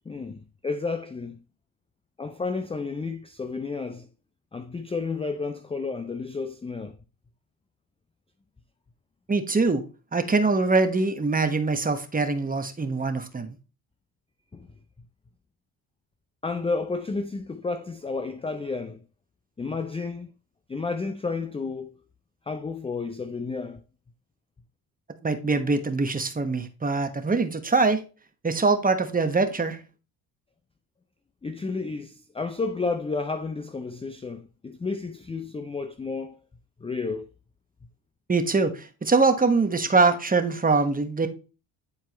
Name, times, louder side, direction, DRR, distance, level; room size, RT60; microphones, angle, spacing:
voice 1, 0.1-1.4 2.2-4.1 4.5-7.0 14.5-14.7 16.4-19.0 19.6-20.3 20.7-21.9 22.5-23.8 31.4-36.4 36.8-37.3, left 4 dB, 15° left, 0.4 m, -31 dB
voice 2, 9.3-9.8 10.1-13.5 25.2-28.0 28.4-29.8 38.3-41.3, right 3 dB, 20° right, 1.1 m, -23 dB
9.7 x 4.3 x 3.0 m
cardioid pair, 95°, 44 cm